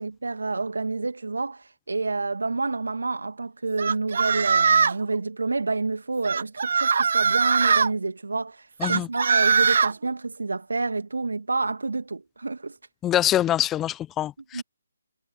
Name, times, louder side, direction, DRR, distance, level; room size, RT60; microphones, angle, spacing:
voice 1, 0.0-12.8 14.5-14.6, right 3 dB, 75° right, 2.1 m, -29 dB
sound 1, 3.8-5.0 6.2-7.9 8.8-9.9, right 5 dB, 55° right, 0.4 m, -21 dB
voice 2, 13.0-14.6, left 12 dB, 15° left, 0.4 m, -24 dB
figure-of-eight pair, 145°, 0 cm